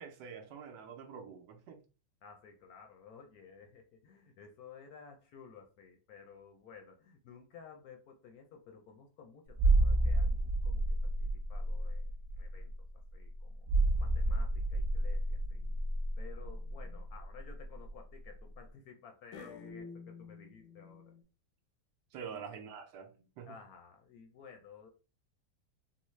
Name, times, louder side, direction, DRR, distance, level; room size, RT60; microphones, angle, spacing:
voice 1, 0.0-1.8 22.1-23.6, right 6 dB, 75° right, 1.2 m, -46 dB
voice 2, 2.2-12.0 12.4-12.7 13.1-13.7 14.0-15.6 16.2-21.1 22.3-22.4 23.5-24.9, left 6 dB, 70° left, 0.9 m, -55 dB
sound 1, 9.5-18.0 18.2-18.4, right 2 dB, 55° right, 0.5 m, -30 dB
sound 2, 15.4-15.9 16.5-17.0 19.3-21.2, left 5 dB, 85° left, 1.3 m, -50 dB
3.9 x 2.0 x 3.1 m
omnidirectional pair, 1.9 m